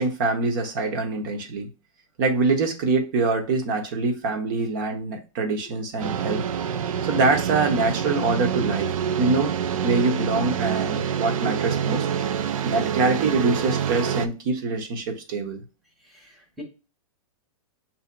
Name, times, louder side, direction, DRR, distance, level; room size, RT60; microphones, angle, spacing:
voice 1, 0.0-1.7 2.2-6.4 7.1-12.1 12.6-15.6, right 3 dB, 35° right, 0.9 m, -24 dB
sound 1, 6.0-14.3, right 8 dB, 75° right, 0.5 m, -26 dB
voice 2, 16.0-16.6, left 3 dB, ahead, 1.0 m, -44 dB
6.9 x 2.7 x 2.2 m
hypercardioid pair, 165°, 18 cm